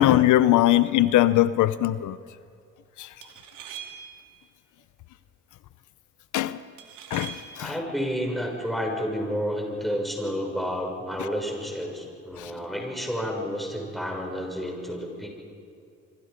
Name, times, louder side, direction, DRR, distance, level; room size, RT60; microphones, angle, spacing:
voice 1, 0.0-2.2 3.0-3.1 6.3-6.6 7.1-7.7 12.4-12.5, left 14 dB, 80° left, 0.7 m, -20 dB
sound 1, 0.8-1.1 3.2-4.3 6.8-7.7, right 8 dB, 90° right, 2.5 m, -42 dB
voice 2, 7.6-15.3, equal, ahead, 6.3 m, -30 dB
26.5 x 25.0 x 5.2 m
cardioid pair, 90°, 30 cm